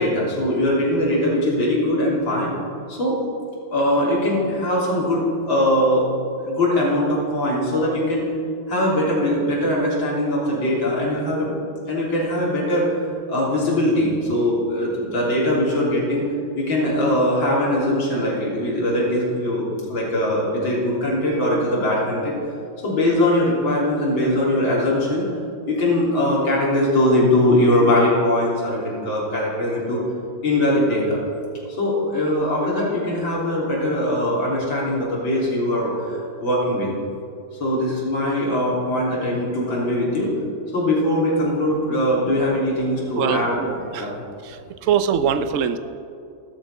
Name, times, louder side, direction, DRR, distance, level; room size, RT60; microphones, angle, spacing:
voice 1, 0.0-2.5 2.9-3.2 3.7-6.1 6.4-8.3 8.7-11.5 11.9-13.0 13.3-16.2 16.6-22.4 22.8-25.3 25.7-30.0 30.4-31.2 31.8-36.9 37.6-40.3 40.7-43.6 44.0-44.3, left 1 dB, 85° left, -5 dB, 4.2 m, -21 dB
voice 2, 43.2-44.1 44.4-44.6 44.8-45.8, right 8 dB, 65° right, 11 dB, 0.8 m, -22 dB
14.0 x 13.0 x 5.6 m, 2.4 s
omnidirectional pair, 2.1 m